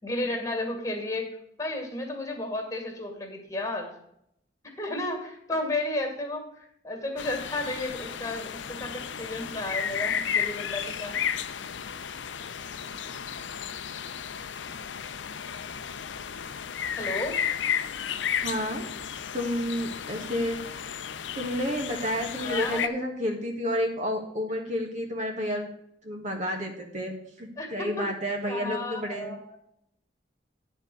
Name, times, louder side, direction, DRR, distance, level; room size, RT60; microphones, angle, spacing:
voice 1, 0.0-1.3 1.6-3.9 4.8-11.2 17.0-17.3 22.4-22.8 27.6-28.1 28.5-29.6, left 2 dB, 20° left, 3 dB, 2.3 m, -33 dB
sound 1, 7.2-22.9, left 8 dB, 85° left, 0.6 m, -33 dB
voice 2, 18.4-18.8 19.3-20.6 21.3-25.7 26.0-29.3, equal, 40° right, 2 dB, 1.5 m, -30 dB
9.9 x 4.5 x 7.6 m, 0.75 s
head